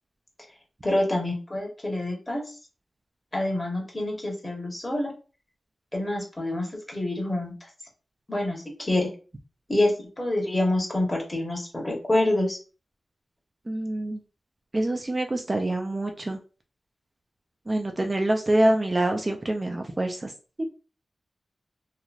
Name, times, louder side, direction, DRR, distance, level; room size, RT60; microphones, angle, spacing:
voice 1, 0.8-2.5 3.3-5.1 5.9-7.5 8.3-9.1 9.7-12.6, left 1 dB, 25° left, -1 dB, 1.2 m, -27 dB
voice 2, 13.7-14.2 14.7-16.4 17.7-20.3, right 1 dB, 30° right, 3 dB, 0.4 m, -25 dB
3.0 x 2.5 x 2.5 m, 0.35 s
wide cardioid pair, 75°, 0 cm